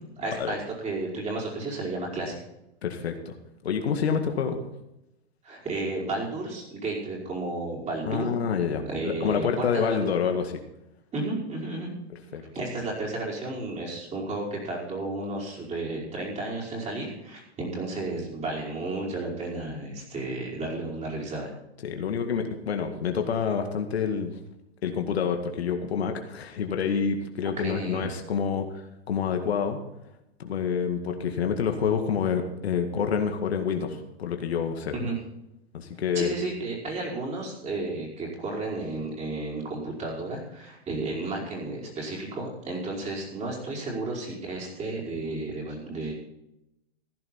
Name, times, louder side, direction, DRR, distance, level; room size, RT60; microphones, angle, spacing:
voice 1, 0.2-2.4 5.4-8.4 8.8-10.1 11.1-11.9 12.3-21.5 27.4-28.1 34.9-35.2 36.1-46.1, right 2 dB, 20° right, -3 dB, 5.2 m, -32 dB
voice 2, 2.8-3.3 3.6-4.6 8.1-10.6 12.3-12.4 21.8-24.3 24.8-28.8 29.1-29.8 30.4-34.9 35.7-36.3, left 6 dB, 70° left, 5 dB, 2.1 m, -27 dB
15.5 x 11.0 x 4.4 m, 0.87 s
hypercardioid pair, 125°, 32 cm